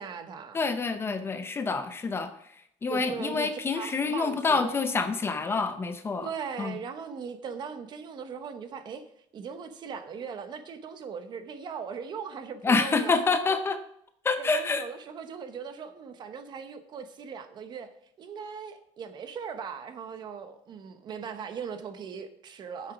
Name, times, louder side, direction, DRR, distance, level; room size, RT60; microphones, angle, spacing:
voice 1, 0.0-0.6 2.9-4.8 6.2-9.0 9.3-13.3 14.4-17.9 18.2-22.9, right 6 dB, 40° right, 9 dB, 1.0 m, -39 dB
voice 2, 0.5-2.3 2.8-6.3 6.6-6.8 12.6-13.8 14.2-14.8, left 4 dB, 20° left, 9 dB, 0.6 m, -27 dB
9.9 x 7.7 x 5.0 m, 0.71 s
cardioid pair, 175°, 12 cm